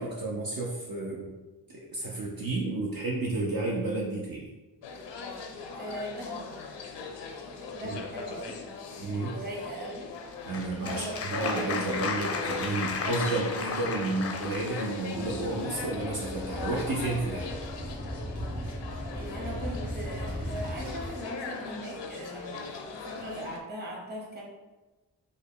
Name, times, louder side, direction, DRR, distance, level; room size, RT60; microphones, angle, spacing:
voice 1, 0.0-1.3 1.7-4.5 7.8-8.0 9.0-9.3 10.5-17.5, right 2 dB, 55° right, -4 dB, 0.7 m, -31 dB
sound 1, 4.8-23.6, left 4 dB, 90° left, 0.5 m, -40 dB
voice 2, 5.7-6.6 7.7-8.6 9.2-10.1 10.7-12.0 19.1-24.4, equal, 25° right, -3 dB, 1.1 m, -39 dB
Applause, 10.1-15.0, left 4 dB, 35° left, 0.4 m, -34 dB
sound 2, 15.1-21.1, equal, 75° right, 1.4 m, -37 dB
3.3 x 2.2 x 3.8 m, 1.1 s
cardioid pair, 55°, 41 cm